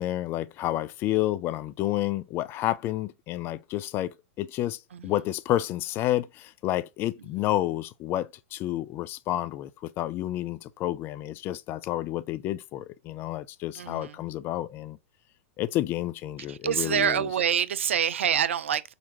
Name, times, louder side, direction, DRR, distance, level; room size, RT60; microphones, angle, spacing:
voice 1, 0.0-15.0 15.6-17.3, left 14 dB, 35° left, 0.4 m, -30 dB
voice 2, 13.8-14.1 16.5-18.9, right 8 dB, 70° right, 0.4 m, -26 dB
4.2 x 3.9 x 2.7 m
figure-of-eight pair, 105°, 7 cm